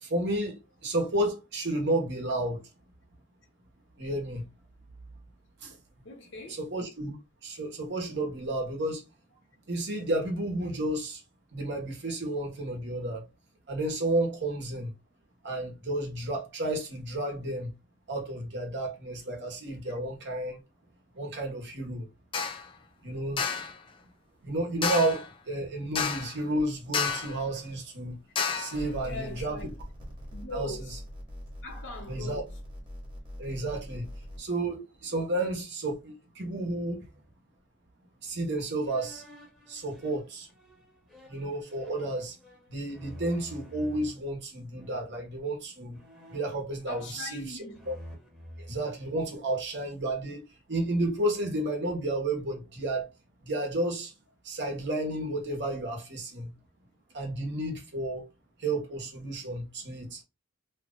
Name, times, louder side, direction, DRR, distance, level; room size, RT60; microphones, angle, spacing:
voice 1, 0.0-2.6 4.0-4.4 5.6-5.7 6.6-7.2 7.4-9.0 9.7-11.2 11.5-13.2 13.7-14.9 15.4-17.7 18.1-20.6 21.1-22.1 23.0-23.4 24.4-28.2 28.5-29.6 30.5-30.7 32.1-32.4 33.4-34.1 34.4-37.0 38.2-39.2 39.7-40.5 41.3-42.4 42.7-46.0 46.3-47.6 47.9-48.0 48.6-50.4 50.7-53.1 53.4-54.1 54.4-56.5 57.1-58.3 58.6-60.2, right 1 dB, 60° right, 1.2 m, -31 dB
voice 2, 6.0-6.6 7.8-7.9 26.2-26.3 29.0-29.7 30.3-31.0 31.6-32.5 46.9-47.9, left 2 dB, 65° left, 1.2 m, -41 dB
sound 1, 22.3-22.7 23.4-23.8 24.8-25.3 26.0-26.4 26.9-27.4 28.4-28.8, left 6 dB, 25° left, 0.4 m, -30 dB
sound 2, 28.7-34.4, equal, 25° right, 1.3 m, -42 dB
sound 3, 38.9-44.1 44.8-45.3 45.9-47.4 47.7-49.7, equal, 5° right, 1.0 m, -50 dB
3.0 x 2.4 x 3.7 m
head